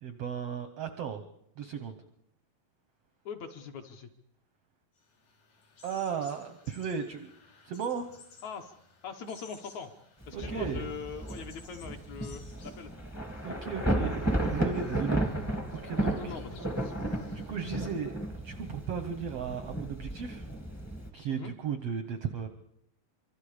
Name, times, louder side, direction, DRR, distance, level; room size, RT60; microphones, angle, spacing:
voice 1, 0.0-1.2 1.6-1.9 5.8-7.3 7.6-8.2 10.3-10.9 13.4-14.2 14.5-15.3 15.7-16.3 17.3-20.5 21.1-22.5, right 7 dB, 80° right, 8 dB, 1.4 m, -35 dB
voice 2, 3.3-4.1 8.4-8.7 9.0-9.9 10.3-12.9 16.2-17.0 21.3-21.5, left 6 dB, 65° left, 5 dB, 2.0 m, -42 dB
sound 1, 5.0-17.9, left 4 dB, 85° left, 5.8 m, -58 dB
Thunder / Rain, 10.2-21.1, right 1 dB, 10° left, 0.7 m, -34 dB
25.5 x 24.5 x 5.0 m, 0.74 s
omnidirectional pair, 4.2 m